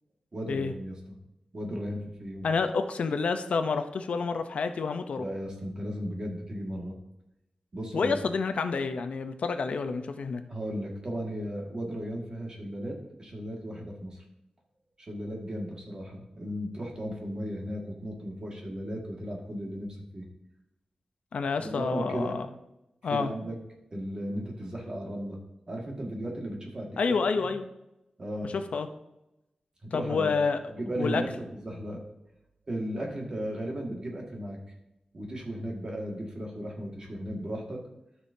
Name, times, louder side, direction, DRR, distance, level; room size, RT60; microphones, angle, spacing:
voice 1, 0.3-1.2 1.5-2.5 5.2-6.9 7.7-8.2 10.5-14.2 15.1-20.3 21.6-22.4 23.1-23.6 23.9-25.4 25.7-26.9 27.3-27.5 28.2-28.5 29.8-30.3 30.7-32.0 32.7-34.6 35.1-37.8, equal, 35° right, 0 dB, 1.9 m, -35 dB
voice 2, 2.4-5.2 7.9-10.4 21.3-22.5 23.0-23.3 27.0-27.7 28.5-28.9 29.9-30.6 31.0-31.2, left 4 dB, 75° left, 8 dB, 0.7 m, -28 dB
13.0 x 6.2 x 2.7 m, 0.89 s
wide cardioid pair, 170°, 2 cm